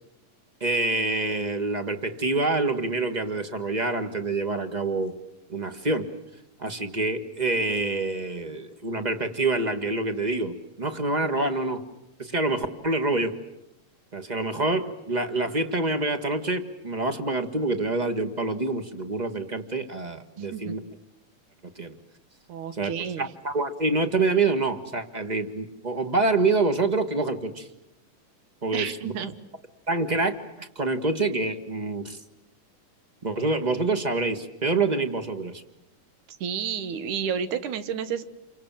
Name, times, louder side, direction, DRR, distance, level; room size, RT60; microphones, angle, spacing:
voice 1, 0.6-5.1 5.5-6.1 6.6-11.8 12.2-13.4 14.1-20.8 21.7-22.0 22.7-27.7 28.6-29.1 29.9-32.2 33.2-35.6, right 3 dB, 30° right, 9 dB, 0.8 m, -26 dB
voice 2, 20.4-20.7 22.5-23.3 28.7-29.3 36.3-38.2, right 7 dB, 75° right, 12 dB, 2.8 m, -31 dB
30.0 x 25.0 x 7.5 m, 0.89 s
omnidirectional pair, 3.6 m